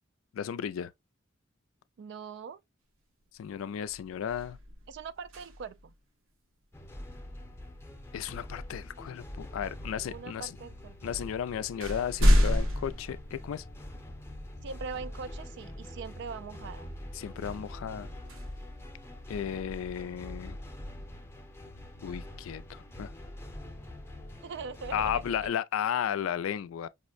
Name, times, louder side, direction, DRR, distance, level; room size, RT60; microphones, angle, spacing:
voice 1, 0.3-0.9 3.4-4.6 8.1-10.6 11.0-13.6 17.1-18.1 19.3-20.6 22.0-23.1 24.9-26.9, left 9 dB, 85° left, 0.3 m, -34 dB
voice 2, 2.0-2.6 4.9-5.9 10.0-11.0 14.6-16.9 24.4-25.5, right 5 dB, 60° right, 0.3 m, -41 dB
sound 1, 3.2-3.5 3.8-5.9 8.1-8.3 9.1-9.8 10.7-10.8 11.2-14.0 14.6-14.7 17.3-19.5, equal, 85° right, 0.8 m, -30 dB
sound 2, 6.7-25.5, left 1 dB, 15° left, 0.6 m, -44 dB
5.3 x 2.1 x 2.4 m
head